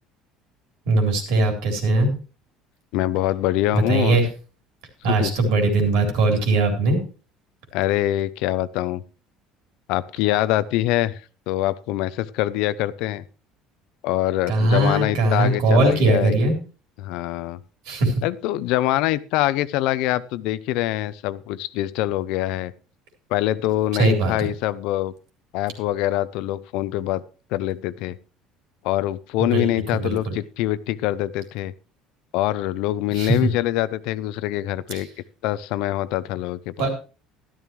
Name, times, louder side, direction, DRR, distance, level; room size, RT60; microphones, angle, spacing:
voice 1, 0.9-2.1 3.7-4.3 5.0-7.0 14.5-16.5 17.9-18.1 23.9-24.5 29.4-30.4 33.1-33.5 34.9-35.0 36.8-36.9, right 2 dB, 70° right, 3 dB, 3.8 m, -20 dB
voice 2, 2.9-4.2 5.1-5.3 7.7-9.0 9.9-13.2 14.0-16.3 17.0-17.6 18.2-22.7 23.3-25.1 25.5-27.2 27.5-28.2 28.8-31.7 32.3-35.1 35.4-36.9, left 15 dB, 65° left, 17 dB, 0.5 m, -24 dB
13.0 x 12.5 x 3.2 m, 0.36 s
cardioid pair, 170°, 0 cm